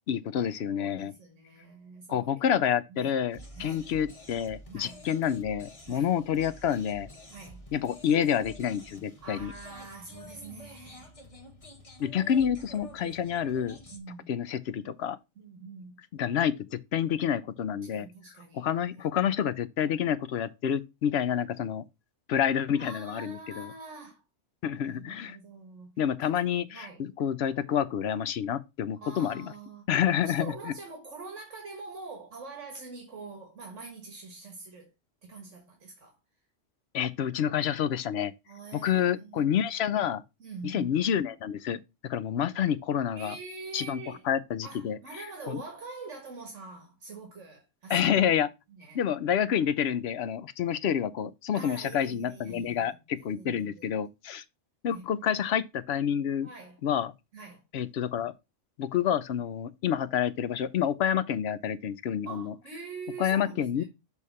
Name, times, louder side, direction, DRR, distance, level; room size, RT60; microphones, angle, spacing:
voice 1, 0.1-1.1 2.1-7.1 7.7-9.5 12.0-13.8 14.3-15.2 16.1-18.1 18.5-21.8 22.3-23.7 24.6-25.4 26.0-29.5 29.9-30.7 36.9-38.3 38.8-40.2 40.6-41.8 42.1-43.3 43.7-44.0 44.3-45.0 45.5-45.6 47.9-48.5 48.9-54.4 54.8-56.5 56.8-57.1 57.7-58.3 58.8-62.5 63.2-63.8, left 9 dB, 65° left, 0.8 m, -28 dB
voice 2, 0.7-2.4 2.9-3.2 3.6-3.9 4.7-5.1 5.9-6.1 7.3-7.6 9.2-11.1 12.9-13.2 13.9-14.3 15.4-16.0 17.9-18.7 19.0-19.1 22.7-24.2 24.8-25.9 26.2-26.4 26.7-27.0 29.0-29.9 30.2-34.9 35.2-36.2 38.5-39.5 40.4-41.0 43.2-44.3 44.6-48.3 48.8-49.0 51.5-53.9 54.9-55.2 56.4-56.8 57.3-57.6 62.3-63.8, right 4 dB, 80° right, 1.8 m, -45 dB
sound 1, 3.3-14.0, left 1 dB, 30° left, 1.2 m, -49 dB
7.0 x 3.2 x 5.4 m
omnidirectional pair, 1.2 m